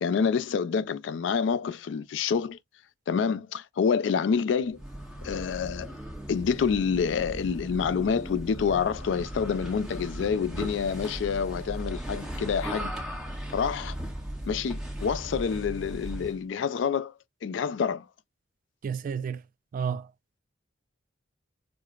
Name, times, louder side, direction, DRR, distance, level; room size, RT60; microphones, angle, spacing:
voice 1, 0.0-2.6 3.1-4.8 5.2-5.9 6.3-12.9 13.5-14.0 14.5-17.1 17.4-18.1, left 6 dB, 70° left, 0.3 m, -27 dB
sound 1, 4.7-16.4, right 1 dB, ahead, 1.0 m, -37 dB
voice 2, 18.8-19.4 19.7-20.1, right 7 dB, 45° right, 0.3 m, -31 dB
4.8 x 2.0 x 2.2 m
head